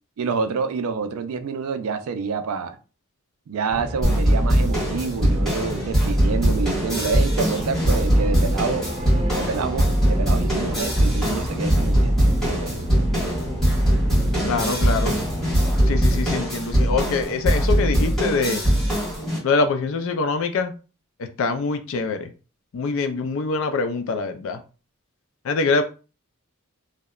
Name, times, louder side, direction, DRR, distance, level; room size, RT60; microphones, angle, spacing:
voice 1, 0.2-2.8 3.5-8.9 9.3-12.8, right 5 dB, 75° right, 0.3 m, -28 dB
sound 1, 3.7-16.4, right 1 dB, 25° right, 0.6 m, -32 dB
sound 2, 4.0-19.4, equal, ahead, 1.3 m, -21 dB
voice 2, 14.4-15.2 15.9-18.6 19.4-20.7 21.4-22.3 22.7-24.6 25.4-25.8, left 4 dB, 65° left, 0.3 m, -24 dB
2.8 x 2.0 x 2.3 m
head